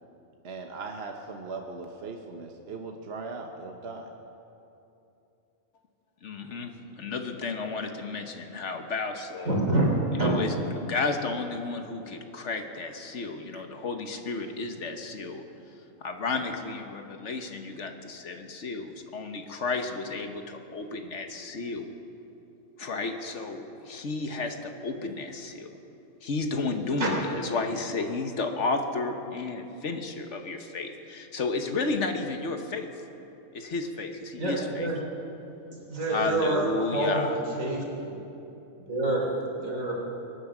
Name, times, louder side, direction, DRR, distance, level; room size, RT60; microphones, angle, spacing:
voice 1, 0.4-4.1 13.5-13.6 39.0-39.1, right 3 dB, 55° right, 2 dB, 1.2 m, -39 dB
voice 2, 6.2-6.7 7.0-9.6 10.2-15.4 16.0-21.9 22.8-25.7 26.2-32.9 33.5-34.9 36.1-37.4, left 3 dB, 60° left, 6 dB, 1.3 m, -32 dB
voice 3, 9.5-9.9 10.2-10.3 27.0-27.1 34.4-35.0 35.9-38.2 38.9-39.3 39.6-39.9, right 2 dB, 80° right, -2 dB, 3.7 m, -27 dB
23.0 x 9.7 x 6.1 m, 2.9 s
omnidirectional pair, 1.4 m